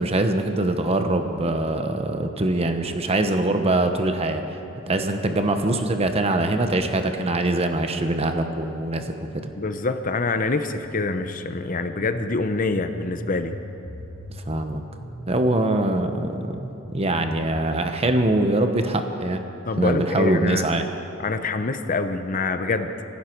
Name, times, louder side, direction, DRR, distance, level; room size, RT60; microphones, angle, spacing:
voice 1, 0.0-4.4 4.9-9.1 14.5-14.8 15.3-16.6 16.9-19.4 19.8-20.8, right 2 dB, 30° right, 6 dB, 1.0 m, -23 dB
voice 2, 9.6-13.6 19.7-20.7 21.2-23.0, left 3 dB, 45° left, 9 dB, 0.7 m, -25 dB
sound 1, 10.8-17.7, equal, 85° left, 2.6 m, -39 dB
26.0 x 11.5 x 4.6 m, 3.0 s
head